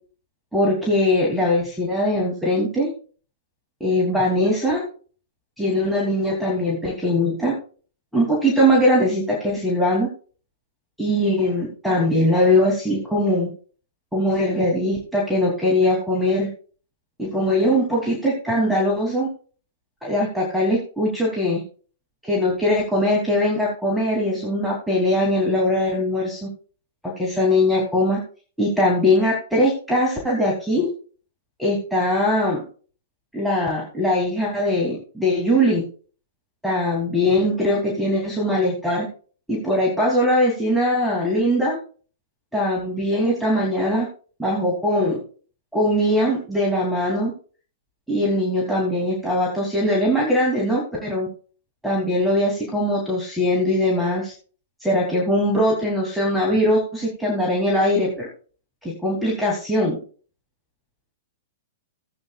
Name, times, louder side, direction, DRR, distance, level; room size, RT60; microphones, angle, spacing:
voice 1, 0.5-2.9 3.8-4.8 5.6-7.5 8.1-10.1 11.0-13.5 14.1-16.5 17.2-19.3 20.0-21.6 22.2-26.5 27.0-28.2 28.6-30.9 31.6-32.6 33.3-35.8 36.6-39.1 39.5-41.8 42.5-44.1 44.4-45.2 45.7-47.3 48.1-51.3 51.8-54.3 54.8-58.3 58.8-60.0, left 1 dB, ahead, -3 dB, 3.0 m, -21 dB
16.5 x 8.8 x 2.4 m, 0.40 s
figure-of-eight pair, 110°, 0 cm